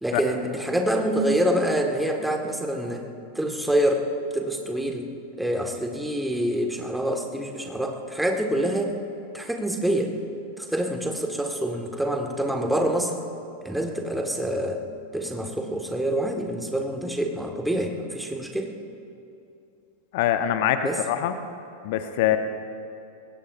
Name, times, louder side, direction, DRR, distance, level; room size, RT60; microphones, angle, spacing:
voice 1, 0.0-3.0 3.3-4.1 4.3-5.1 5.4-8.9 9.3-10.1 10.6-13.1 13.6-14.8 15.1-18.7 20.8-21.0, right 1 dB, 5° right, 3 dB, 1.7 m, -26 dB
voice 2, 20.1-21.3 21.8-22.4, left 11 dB, 50° left, 9 dB, 0.9 m, -23 dB
26.0 x 21.0 x 2.6 m, 2.7 s
figure-of-eight pair, 90°, 0 cm